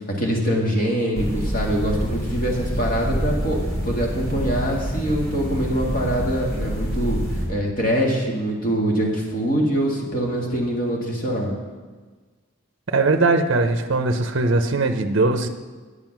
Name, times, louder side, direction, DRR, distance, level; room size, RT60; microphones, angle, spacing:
voice 1, 0.2-3.6 3.8-7.2 7.5-11.5, equal, 40° left, -1 dB, 2.0 m, -24 dB
sound 1, 1.1-7.4, equal, 10° left, 2.5 m, -27 dB
voice 2, 12.9-15.5, right 3 dB, 55° right, 7 dB, 0.7 m, -20 dB
9.0 x 8.3 x 5.9 m, 1.4 s
head